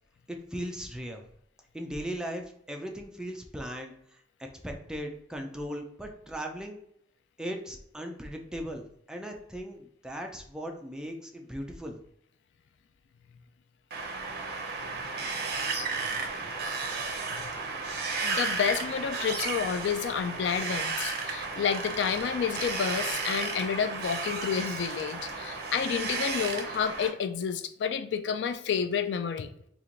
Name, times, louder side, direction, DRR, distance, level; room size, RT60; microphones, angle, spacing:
voice 1, 0.3-1.2 1.7-4.0 4.4-6.8 7.4-12.0, equal, 5° right, 0.4 m, -38 dB
Wind, 13.9-27.1, right 4 dB, 60° right, 0.6 m, -33 dB
voice 2, 18.2-29.5, left 7 dB, 75° left, 0.3 m, -30 dB
3.0 x 2.5 x 3.8 m
head